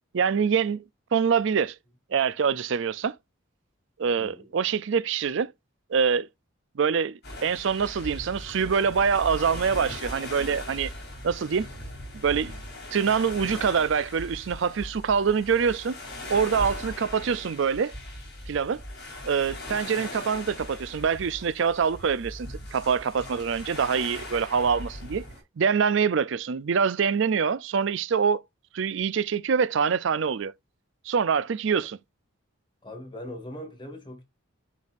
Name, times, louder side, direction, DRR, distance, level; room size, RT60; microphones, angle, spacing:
voice 1, 0.1-0.8 1.1-1.8 2.1-3.2 4.0-5.5 5.9-6.3 6.8-10.9 11.2-11.7 12.1-12.6 12.9-15.9 16.3-17.9 18.5-18.8 19.2-25.2 25.6-28.4 28.7-30.5 31.1-32.0, right 6 dB, 65° right, 0.4 m, -25 dB
voice 2, 4.2-4.5 19.6-20.0 32.8-34.2, left 1 dB, 20° left, 2.0 m, -41 dB
sound 1, 7.2-25.4, left 1 dB, 50° left, 4.3 m, -39 dB
10.5 x 4.1 x 2.5 m
head